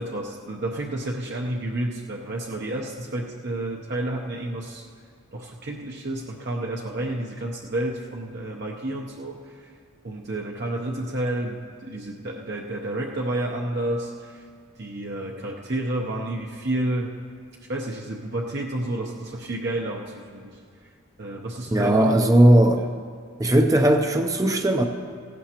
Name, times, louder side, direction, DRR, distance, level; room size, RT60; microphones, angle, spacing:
voice 1, 0.0-4.9 5.3-9.7 10.0-14.4 14.8-17.1 17.7-20.9 21.2-22.3, right 1 dB, 50° right, -1 dB, 0.7 m, -30 dB
voice 2, 21.7-22.9 23.4-24.8, right 1 dB, 15° right, 4 dB, 0.5 m, -18 dB
17.0 x 16.0 x 2.9 m, 2.1 s
head